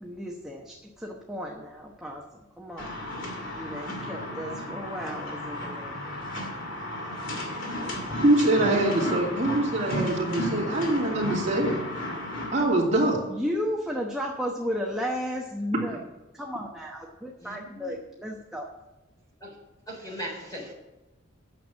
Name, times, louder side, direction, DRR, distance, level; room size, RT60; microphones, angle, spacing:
voice 1, 0.0-2.9 3.5-6.0 7.8-8.2 13.3-16.0 16.3-18.7, equal, 5° right, -1 dB, 1.0 m, -34 dB
sound 1, 2.8-12.6, left 1 dB, 70° left, 2.6 m, -33 dB
voice 2, 8.2-11.7 12.5-13.2, right 1 dB, 35° right, -4 dB, 2.6 m, -23 dB
voice 3, 17.4-17.9 19.4-19.6 19.9-20.7, equal, 20° left, -1 dB, 3.9 m, -38 dB
9.2 x 7.3 x 7.3 m, 1.0 s
head